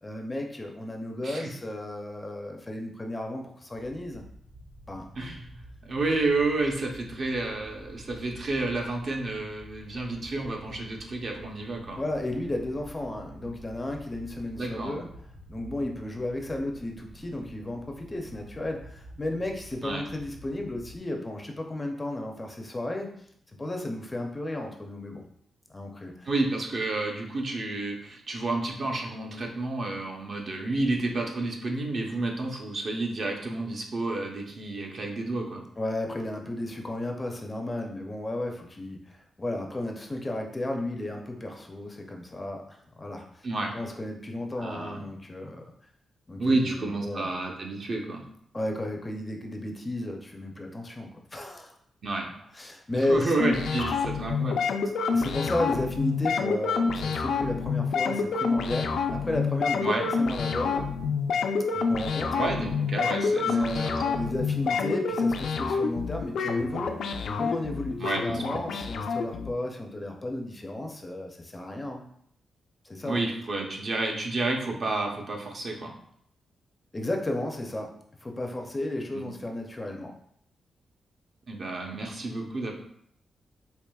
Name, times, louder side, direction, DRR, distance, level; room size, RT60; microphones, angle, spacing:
voice 1, 0.0-4.2 4.9-5.1 11.9-15.1 15.5-23.1 23.6-25.2 25.7-26.3 35.8-43.4 43.7-45.7 46.3-47.3 48.5-51.7 52.5-53.3 53.9-54.0 55.0-60.9 61.7-62.4 63.4-72.1 72.8-73.2 76.9-77.9 78.2-80.1, left 1 dB, 20° left, 3 dB, 0.4 m, -33 dB
sound 1, 3.7-21.0, right 1 dB, 75° right, 1.2 m, -49 dB
voice 2, 5.2-12.0 14.6-14.9 19.8-20.0 26.2-35.6 43.4-43.7 44.6-45.0 46.4-48.2 52.0-52.3 53.1-54.7 59.8-60.1 62.3-64.3 64.7-64.8 68.0-68.6 73.0-75.9 79.1-79.3 81.5-82.7, right 2 dB, 50° right, 1 dB, 0.6 m, -30 dB
sound 2, 53.4-69.5, left 5 dB, 85° left, 0.3 m, -28 dB
4.7 x 2.8 x 2.3 m, 0.68 s
wide cardioid pair, 135°, 0 cm